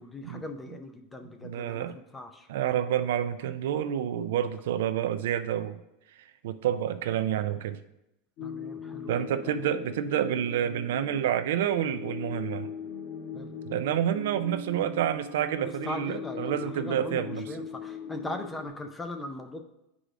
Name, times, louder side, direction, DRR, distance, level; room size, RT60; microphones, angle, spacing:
voice 1, 0.0-2.5 8.4-9.6 13.3-13.5 15.5-19.6, left 2 dB, 10° left, 6 dB, 0.4 m, -40 dB
voice 2, 1.4-1.9 2.5-5.8 6.4-7.8 9.1-12.7 13.7-17.4, right 10 dB, 80° right, 10 dB, 0.3 m, -28 dB
sound 1, 8.4-18.7, left 5 dB, 40° left, 0.9 m, -40 dB
9.9 x 4.8 x 2.5 m, 0.89 s
supercardioid pair, 175°, 0 cm